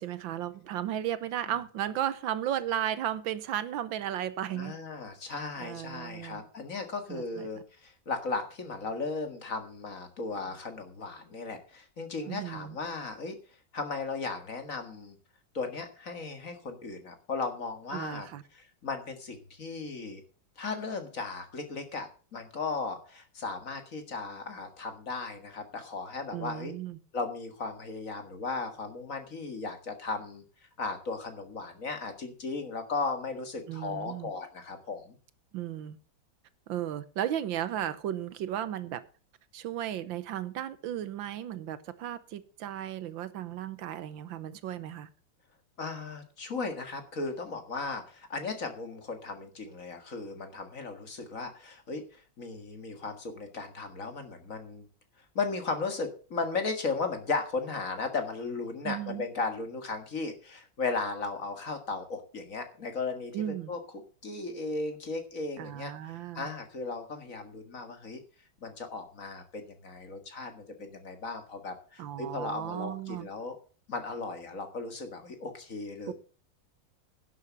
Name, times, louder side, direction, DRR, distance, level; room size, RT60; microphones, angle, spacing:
voice 1, 0.0-4.8 5.6-6.4 7.1-7.5 12.3-12.8 17.9-18.4 26.3-27.0 33.7-34.3 35.5-36.0 36.7-39.0 39.5-45.1 58.8-59.2 63.3-63.7 65.6-66.5 72.0-73.3 76.1-76.2, right 11 dB, 80° right, 1.6 m, -35 dB
voice 2, 4.5-13.4 13.7-15.1 15.5-18.3 18.5-20.2 20.6-26.7 27.1-30.4 30.8-35.2 45.8-54.9 55.4-63.8 64.2-68.2 68.6-73.6 73.9-76.1, left 4 dB, 45° left, 2.1 m, -36 dB
11.0 x 7.9 x 6.9 m
omnidirectional pair, 2.1 m